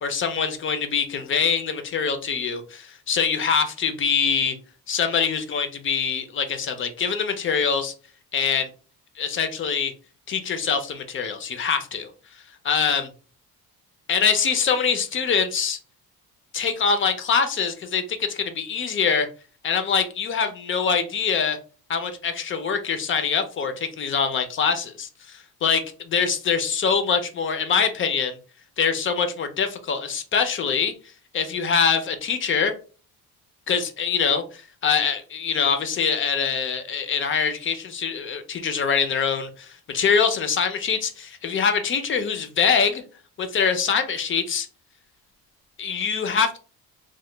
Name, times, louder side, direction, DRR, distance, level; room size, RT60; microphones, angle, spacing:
voice 1, 0.0-4.6 4.9-7.9 8.3-8.7 9.2-9.9 10.3-12.1 12.6-13.1 14.1-15.8 16.5-19.3 19.6-21.6 21.9-28.4 28.8-30.9 31.3-32.7 33.7-43.0 43.4-44.7 45.8-46.6, left 6 dB, 35° left, 8 dB, 0.4 m, -24 dB
2.9 x 2.1 x 3.2 m, 0.37 s
cardioid pair, 155°, 37 cm